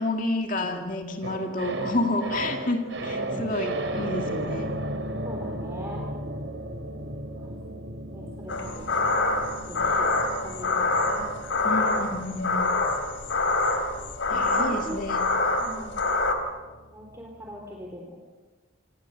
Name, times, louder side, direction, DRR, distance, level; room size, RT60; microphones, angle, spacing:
voice 1, 0.0-4.8 11.6-12.7 14.3-15.3, left 2 dB, 40° left, 3 dB, 2.3 m, -30 dB
sound 1, 1.2-17.5 17.8-17.9, right 1 dB, 75° right, 3.6 m, -36 dB
voice 2, 3.0-3.5 5.2-6.0 7.4-7.5 8.1-9.0 9.7-12.0 13.6-13.7 14.3-15.0 15.6-16.0 16.9-18.2, equal, 15° right, -1 dB, 3.9 m, -42 dB
sound 2, 8.5-16.3, left 2 dB, 75° left, 3.5 m, -26 dB
29.0 x 26.0 x 6.7 m, 1.3 s
head